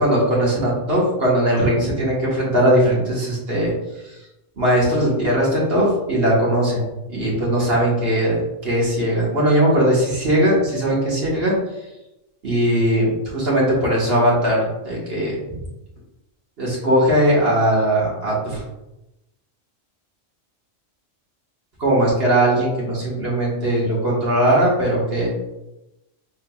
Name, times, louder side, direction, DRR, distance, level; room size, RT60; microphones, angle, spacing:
voice 1, 0.0-3.7 4.1-4.2 4.6-6.8 7.1-11.5 12.4-15.6 16.6-18.6 21.8-25.3, right 1 dB, 50° right, -5 dB, 1.6 m, -19 dB
5.8 x 3.5 x 2.3 m, 0.94 s
omnidirectional pair, 1.3 m